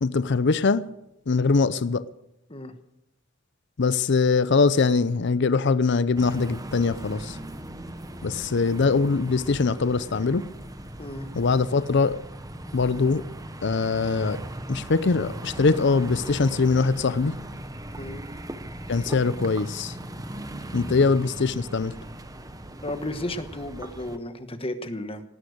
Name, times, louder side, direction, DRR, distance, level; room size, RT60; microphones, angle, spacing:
voice 1, 0.0-0.8 1.3-2.0 3.8-7.4 8.2-10.4 11.3-12.2 12.7-13.2 13.6-14.4 14.7-17.3 18.9-19.9 20.7-21.9, left 4 dB, 60° left, 0.6 m, -22 dB
sound 1, 6.2-24.2, right 1 dB, 20° right, 1.1 m, -38 dB
voice 2, 11.0-11.3 18.0-18.2 21.4-21.5 22.8-25.2, left 1 dB, 30° left, 1.2 m, -33 dB
18.5 x 11.5 x 6.5 m
head